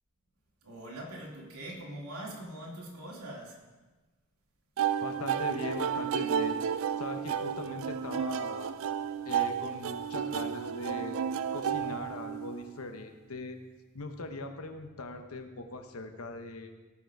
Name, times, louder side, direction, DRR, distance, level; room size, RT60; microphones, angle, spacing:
voice 1, 0.6-3.6, right 1 dB, 80° right, -2 dB, 2.7 m, -42 dB
sound 1, 4.8-12.7, right 8 dB, 65° right, 0.4 m, -32 dB
voice 2, 5.0-6.6 7.0-8.7 9.2-11.2 11.5-13.6 13.9-16.7, left 2 dB, 75° left, 6 dB, 1.1 m, -40 dB
17.0 x 6.0 x 4.7 m, 1.2 s
head